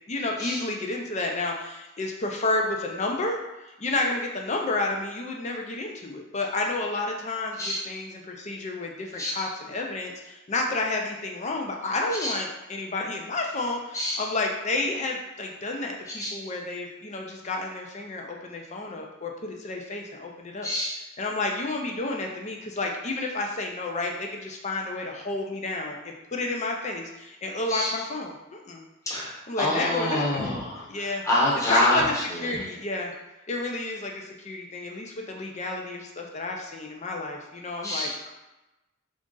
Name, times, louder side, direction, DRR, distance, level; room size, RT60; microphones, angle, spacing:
voice 1, 0.1-3.4 3.6-20.7 21.2-28.9 29.5-30.4 30.9-31.2 31.7-32.1 32.4-33.1 33.5-38.3, left 2 dB, 35° left, 1 dB, 0.5 m, -31 dB
voice 2, 20.6-20.9 27.7-27.9 29.1-30.8 31.2-32.4 37.8-38.1, left 1 dB, 15° left, -5 dB, 0.9 m, -26 dB
3.7 x 2.5 x 3.7 m, 1.0 s
head